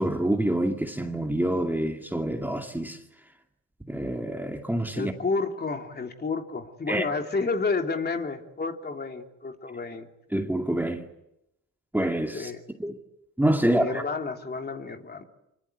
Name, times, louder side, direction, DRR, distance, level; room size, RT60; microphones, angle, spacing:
voice 1, 0.0-3.0 3.9-5.1 6.9-7.0 10.3-11.0 11.9-12.5 12.8-13.0 13.4-14.0, right 1 dB, 5° right, 2.4 m, -26 dB
voice 2, 4.9-10.1 12.3-12.6 13.7-15.2, left 4 dB, 35° left, 3.2 m, -30 dB
26.0 x 24.5 x 8.2 m
cardioid pair, 90°, 30 cm